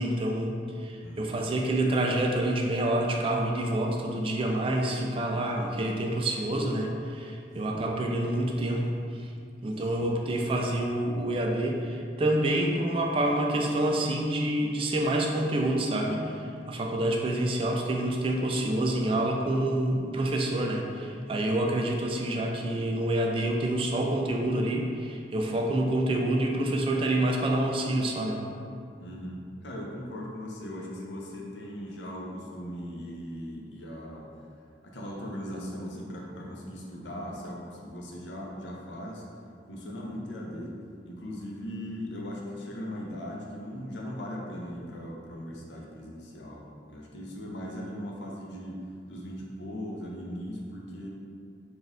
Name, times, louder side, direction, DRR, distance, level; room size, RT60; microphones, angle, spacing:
voice 1, 0.0-9.3 9.6-28.4, right 1 dB, 30° right, 1 dB, 0.3 m, -27 dB
voice 2, 1.0-1.3 7.7-8.0 9.9-10.1 29.0-34.3 34.8-39.2 39.7-40.8 41.0-48.8 49.1-51.1, equal, 80° left, -2 dB, 0.7 m, -39 dB
4.2 x 2.5 x 3.5 m, 2.3 s
head